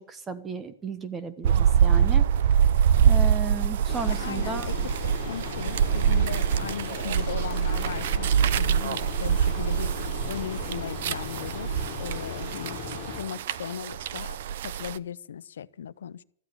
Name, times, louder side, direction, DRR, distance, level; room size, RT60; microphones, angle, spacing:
voice 1, 0.1-2.2 3.0-4.7, right 4 dB, 10° right, 0.9 m, -34 dB
sound 1, 1.4-15.0, right 8 dB, 50° right, 0.6 m, -25 dB
sound 2, 3.9-13.2, left 9 dB, 30° left, 2.2 m, -38 dB
voice 2, 4.1-9.9 10.3-12.8 13.1-16.2, left 8 dB, 85° left, 0.7 m, -37 dB
15.5 x 13.5 x 6.7 m
supercardioid pair, 180°, 0 cm